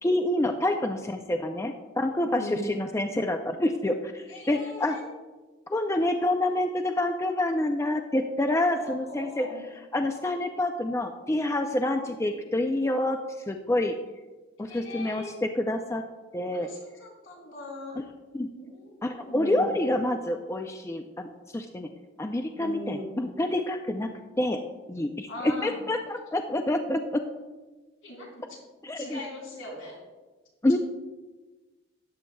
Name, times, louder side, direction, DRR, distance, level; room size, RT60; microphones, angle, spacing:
voice 1, 0.0-5.0 5.7-9.5 9.9-13.2 13.5-14.0 14.6-16.0 16.3-16.7 18.3-18.5 19.0-21.3 21.5-21.9 22.2-24.1 24.4-24.6 24.9-27.2 28.8-29.2 30.6-30.8, left 1 dB, 15° left, 5 dB, 0.4 m, -27 dB
voice 2, 2.4-2.7 4.3-5.1 8.6-9.7 11.9-12.3 14.6-15.4 16.5-18.0 18.5-19.8 22.6-23.2 25.3-25.8 28.0-28.6 28.9-30.0, left 1 dB, 80° left, -2 dB, 3.3 m, -40 dB
13.0 x 9.8 x 2.3 m, 1.2 s
head